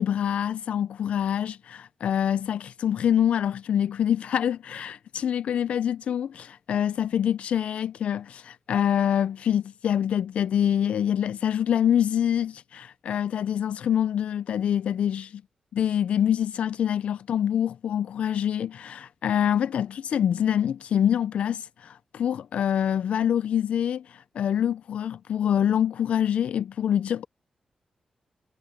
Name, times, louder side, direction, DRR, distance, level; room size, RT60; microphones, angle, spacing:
voice 1, 0.0-15.4 15.7-27.3, left 9 dB, 85° left, 0.3 m, -25 dB
wide cardioid pair, 150°, 2 cm